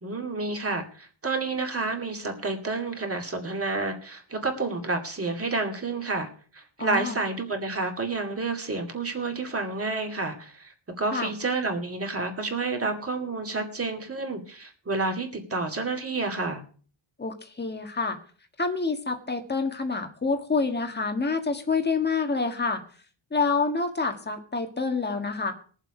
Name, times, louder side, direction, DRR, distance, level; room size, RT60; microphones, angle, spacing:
voice 1, 0.0-6.3 6.5-16.6, right 3 dB, 30° right, 3 dB, 2.3 m, -30 dB
voice 2, 6.8-7.2 11.1-11.3 17.2-18.2 18.6-22.8 23.3-25.5, left 4 dB, 20° left, 5 dB, 1.6 m, -27 dB
20.5 x 7.4 x 4.9 m, 0.43 s
wide cardioid pair, 150°, 49 cm